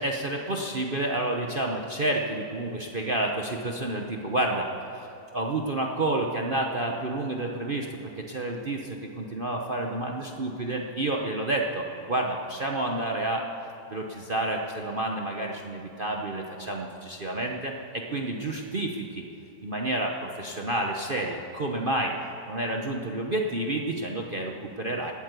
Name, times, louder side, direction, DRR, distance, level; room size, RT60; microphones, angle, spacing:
voice 1, 0.0-4.7 5.0-7.9 8.2-13.5 13.9-19.2 19.6-22.1 22.5-25.1, right 2 dB, 40° right, 1 dB, 0.8 m, -29 dB
18.0 x 8.4 x 8.2 m, 2.8 s
omnidirectional pair, 2.0 m